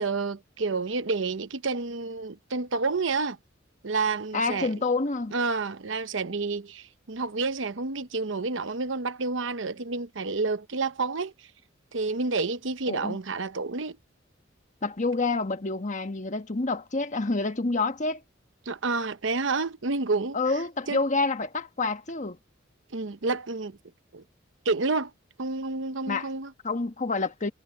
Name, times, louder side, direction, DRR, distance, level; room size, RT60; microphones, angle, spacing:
voice 1, 0.0-3.4 3.8-4.7 5.3-11.3 11.9-14.0 18.7-20.4 20.9-21.0 22.9-23.8 24.1-24.2 24.6-25.1 25.4-26.5, right 3 dB, 70° right, 0.9 m, -29 dB
voice 2, 4.3-5.3 12.9-13.2 14.8-18.2 20.3-22.4 26.1-26.3 26.6-27.5, left 3 dB, 40° left, 1.3 m, -28 dB
head